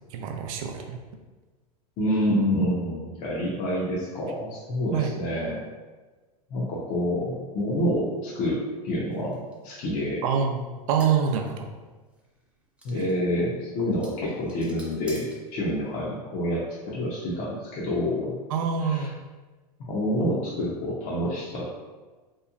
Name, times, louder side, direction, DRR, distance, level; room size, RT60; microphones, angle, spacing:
voice 1, 0.1-1.0 4.9-5.1 10.2-10.6 10.9-11.7 13.0-13.1 18.5-19.1, right 7 dB, 60° right, 3 dB, 0.4 m, -25 dB
voice 2, 2.0-5.6 6.5-10.2 12.8-18.3 18.9-19.1 19.9-21.7, equal, 45° left, -6 dB, 0.6 m, -28 dB
sound 1, 9.1-16.1, equal, 5° right, 0.5 m, -49 dB
2.9 x 2.1 x 2.3 m, 1.3 s
hypercardioid pair, 105°, 20 cm